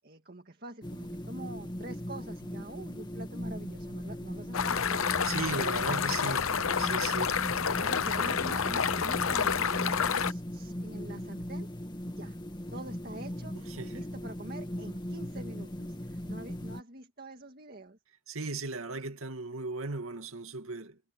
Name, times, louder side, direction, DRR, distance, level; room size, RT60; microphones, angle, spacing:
voice 1, 0.0-5.1 6.9-12.4 12.7-18.0, right 1 dB, 45° right, 2.0 m, -46 dB
sound 1, 0.8-16.8, equal, 20° left, 2.0 m, -39 dB
sound 2, 4.5-10.3, left 6 dB, 90° left, 0.9 m, -29 dB
voice 2, 5.2-7.3 13.7-14.0 18.3-21.0, right 3 dB, 90° right, 2.4 m, -37 dB
head